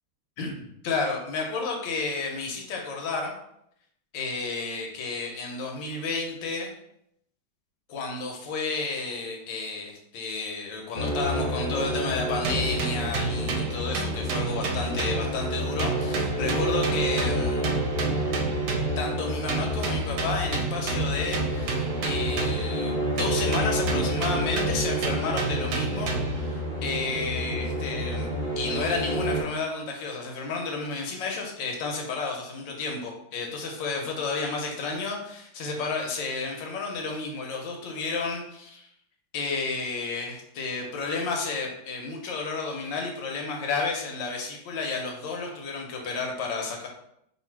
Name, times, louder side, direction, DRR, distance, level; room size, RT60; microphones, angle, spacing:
voice 1, 0.4-3.3 4.1-6.7 7.9-17.8 19.0-26.1 26.4-28.3 28.6-38.9 39.3-46.9, left 4 dB, 65° left, 1 dB, 1.3 m, -31 dB
sound 1, 10.9-29.4, right 1 dB, 40° left, 0.6 m, -29 dB
sound 2, 12.4-15.5 15.8-19.1 19.5-22.8 23.2-26.5, right 3 dB, 70° right, 1.3 m, -31 dB
3.4 x 2.6 x 4.4 m, 0.76 s
omnidirectional pair, 2.4 m